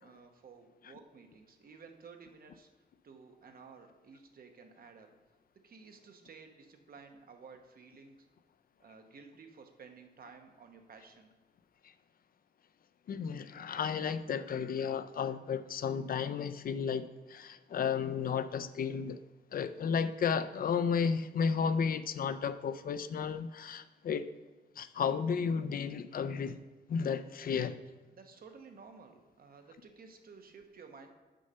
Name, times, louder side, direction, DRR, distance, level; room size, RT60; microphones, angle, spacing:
voice 1, 0.0-2.7 3.0-5.1 5.6-8.3 8.8-11.3 28.1-31.1, right 5 dB, 60° right, 5 dB, 1.0 m, -54 dB
voice 2, 13.1-19.2 19.5-24.3 24.8-26.6 26.9-27.8, left 6 dB, 55° left, 12 dB, 0.4 m, -33 dB
6.4 x 5.5 x 6.6 m, 1.2 s
wide cardioid pair, 135°, 17 cm